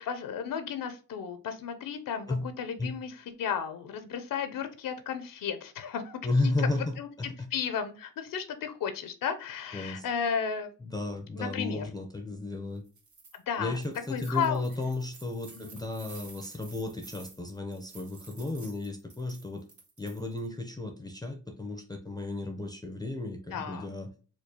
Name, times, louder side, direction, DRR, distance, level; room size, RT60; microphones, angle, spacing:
voice 1, 0.0-6.2 6.6-7.1 7.5-10.7 11.4-11.9 13.5-13.8 14.1-14.7 15.5-15.7 23.5-23.9, left 7 dB, 80° left, 9 dB, 0.6 m, -34 dB
voice 2, 6.2-7.5 9.7-10.1 10.8-12.8 13.6-19.6 20.0-24.1, left 2 dB, 10° left, 3 dB, 0.5 m, -33 dB
sound 1, 12.8-13.4 13.7-20.5, right 4 dB, 60° right, 1.3 m, -52 dB
4.4 x 2.3 x 2.7 m, 0.38 s
cardioid pair, 90°, 33 cm